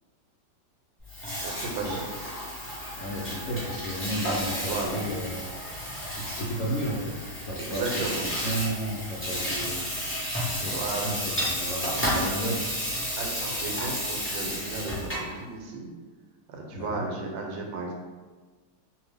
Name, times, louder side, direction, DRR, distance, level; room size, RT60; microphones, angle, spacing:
Water tap faucet / Sink (filling or washing), 1.0-15.3, equal, 15° left, 0.5 m, -32 dB
voice 1, 1.4-2.1 4.7-5.0 7.5-8.2 10.7-11.1 12.3-12.5 13.2-15.9 16.5-17.9, right 3 dB, 85° right, 1 dB, 1.3 m, -34 dB
voice 2, 3.0-5.4 6.2-9.8 10.6-12.6 16.7-17.0, right 1 dB, 70° left, -5 dB, 0.8 m, -33 dB
2.7 x 2.6 x 3.3 m, 1.4 s
omnidirectional pair, 2.0 m